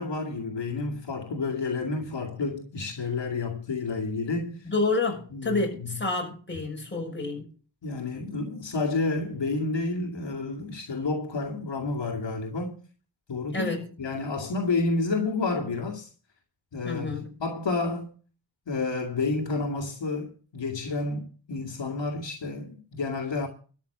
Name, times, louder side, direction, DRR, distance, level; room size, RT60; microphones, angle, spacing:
voice 1, 0.0-4.6 5.3-5.9 7.8-12.8 13.3-13.7 14.0-16.1 16.7-18.1 18.7-23.5, left 3 dB, 70° left, 2.3 m, -30 dB
voice 2, 4.6-7.5 13.5-13.9 16.8-17.3, left 3 dB, 25° left, 6.3 m, -29 dB
13.0 x 6.2 x 7.8 m
wide cardioid pair, 100°, 45 cm